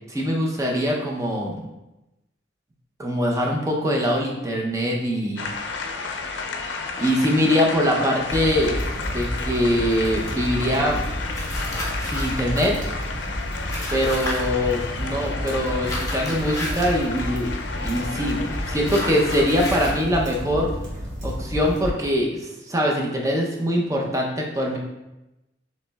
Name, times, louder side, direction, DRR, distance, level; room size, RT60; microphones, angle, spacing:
voice 1, 0.1-1.6 3.0-5.5 7.0-8.8 9.1-11.0 12.0-12.8 13.9-17.5 17.8-20.7 21.2-24.8, equal, 15° right, -1 dB, 0.6 m, -23 dB
sound 1, 5.4-20.0, left 4 dB, 65° left, 0.5 m, -32 dB
sound 2, 8.3-21.9, equal, 40° right, 1.1 m, -31 dB
sound 3, 11.3-12.4 13.7-14.4 15.9-16.9 18.8-20.0, left 1 dB, 15° left, 0.8 m, -32 dB
6.8 x 3.1 x 2.3 m, 0.97 s
head